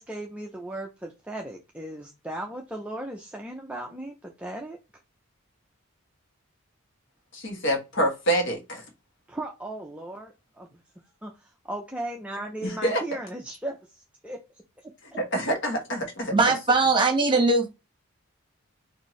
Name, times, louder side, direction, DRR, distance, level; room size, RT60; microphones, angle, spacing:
voice 1, 0.0-4.8 9.3-10.7 11.2-15.2, right 1 dB, 5° right, 0.4 m, -37 dB
voice 2, 7.3-8.8 12.6-13.0 15.1-16.3, right 1 dB, 55° left, 1.3 m, -26 dB
voice 3, 16.3-17.7, right 3 dB, 20° right, 1.1 m, -20 dB
4.4 x 2.6 x 3.1 m
head